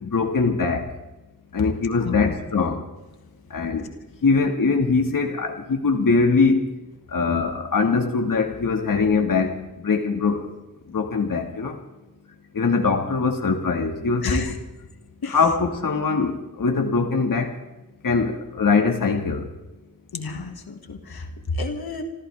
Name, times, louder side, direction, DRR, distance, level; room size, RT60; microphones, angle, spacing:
voice 1, 0.0-0.9 1.5-2.8 3.5-3.9 4.2-6.7 7.1-10.5 10.9-11.8 12.5-14.5 15.3-17.5 18.0-19.5, left 4 dB, 65° left, 4 dB, 1.9 m, -22 dB
voice 2, 2.0-2.4 14.2-14.6 15.2-15.4 20.1-22.0, left 3 dB, 90° left, 4 dB, 2.1 m, -30 dB
27.0 x 15.0 x 3.5 m, 1.0 s
wide cardioid pair, 100°, 36 cm